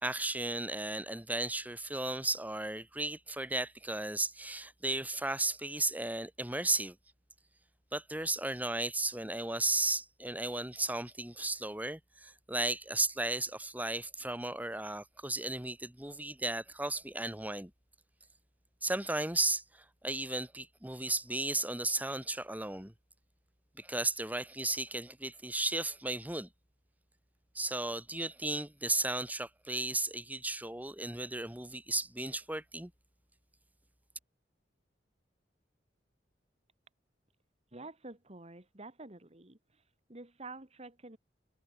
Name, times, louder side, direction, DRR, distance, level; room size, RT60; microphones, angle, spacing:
voice 1, 0.0-7.0 7.9-17.7 18.8-22.9 23.8-26.5 27.5-32.9, right 2 dB, 10° right, 2.3 m, -35 dB
voice 2, 37.7-39.6 40.1-41.2, right 2 dB, 35° right, 2.3 m, -48 dB
head